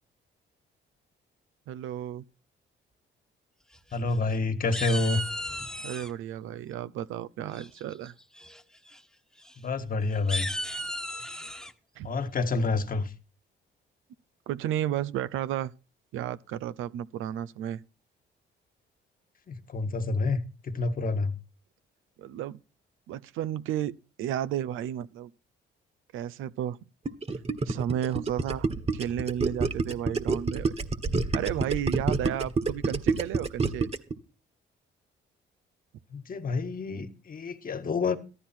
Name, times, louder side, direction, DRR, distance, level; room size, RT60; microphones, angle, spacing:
voice 1, 1.7-2.2 5.8-8.1 12.0-12.1 14.5-15.7 16.1-17.8 22.2-22.6 23.1-25.3 26.1-26.8 27.6-28.7 28.9-30.7 31.3-33.9, right 11 dB, 90° right, 0.7 m, -33 dB
sound 1, 3.7-4.4 4.7-6.1 7.5-7.9 8.4-8.6 8.9-9.0 9.4-9.5 10.1-11.7, equal, 5° left, 1.2 m, -35 dB
voice 2, 3.9-5.2 9.6-10.5 12.0-13.1 19.5-21.3 36.1-38.2, left 3 dB, 45° left, 1.7 m, -28 dB
Gurgling, 27.0-34.1, right 3 dB, 30° right, 1.5 m, -27 dB
14.0 x 12.5 x 4.5 m
cardioid pair, 90°, 20 cm